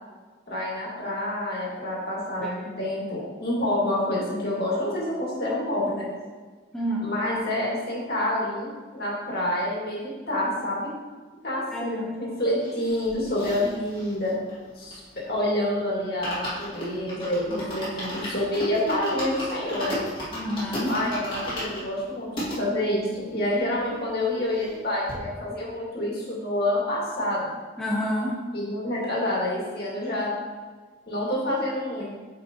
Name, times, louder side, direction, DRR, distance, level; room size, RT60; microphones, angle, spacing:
voice 1, 0.5-6.1 7.0-10.9 11.4-14.3 14.8-15.0 15.3-20.0 20.8-27.5 28.5-30.3 31.1-32.1, left 1 dB, 55° left, -5 dB, 2.2 m, -28 dB
voice 2, 6.7-7.1 11.7-12.2 20.3-20.9 27.8-28.4, equal, 5° left, -5 dB, 0.7 m, -29 dB
sound 1, 12.6-15.4 15.7-15.8 16.0-22.6 23.2-23.3 23.4-23.5 23.8-24.8 25.1-25.2, equal, 25° left, 2.1 m, -35 dB
9.2 x 5.3 x 2.9 m, 1.4 s
head